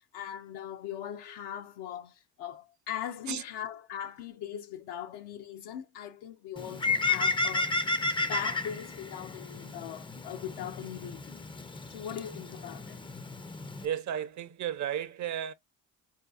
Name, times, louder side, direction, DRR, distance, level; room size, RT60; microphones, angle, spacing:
voice 1, 0.0-11.4 11.9-13.0, left 10 dB, 75° left, 0.6 m, -40 dB
Bird, 6.6-13.9, left 3 dB, 15° left, 0.3 m, -33 dB
voice 2, 13.8-15.5, right 10 dB, 45° right, 0.5 m, -33 dB
4.5 x 2.8 x 2.2 m
supercardioid pair, 65°, 41 cm